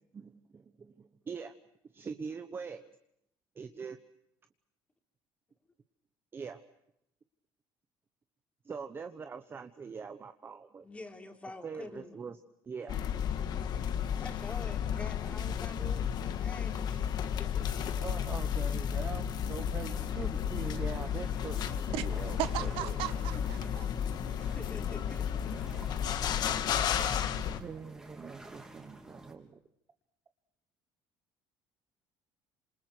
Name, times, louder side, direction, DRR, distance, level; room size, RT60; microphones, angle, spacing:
voice 1, 0.1-1.5 1.9-2.8 3.6-4.0 6.3-6.6 8.6-10.9 11.6-12.4 12.6-13.0 17.9-23.0 27.6-29.6, right 5 dB, 25° right, 8 dB, 1.1 m, -43 dB
voice 2, 10.8-12.2 14.1-17.1 17.4-17.7 24.6-25.4, left 2 dB, 15° left, 4 dB, 3.6 m, -47 dB
sound 1, 12.9-27.6, left 8 dB, 50° left, 1.7 m, -33 dB
sound 2, 19.9-29.3, right 1 dB, 10° right, 3.7 m, -51 dB
voice 3, 22.4-23.8, right 15 dB, 80° right, 11 dB, 1.5 m, -36 dB
28.0 x 27.5 x 6.2 m, 0.78 s
cardioid pair, 145°, 9 cm